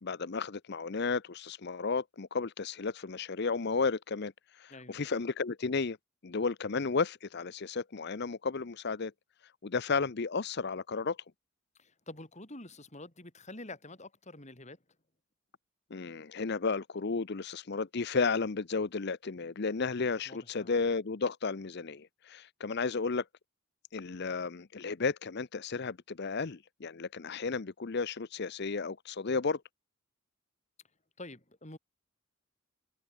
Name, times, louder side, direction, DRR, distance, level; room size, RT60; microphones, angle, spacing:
voice 1, 0.0-4.3 4.6-6.0 6.2-9.1 9.6-11.2 15.9-23.2 23.9-29.6, left 4 dB, 50° left, 0.7 m, -33 dB
voice 2, 4.7-5.0 11.8-14.8 20.3-20.7 31.2-31.8, left 2 dB, 35° left, 4.6 m, -47 dB
head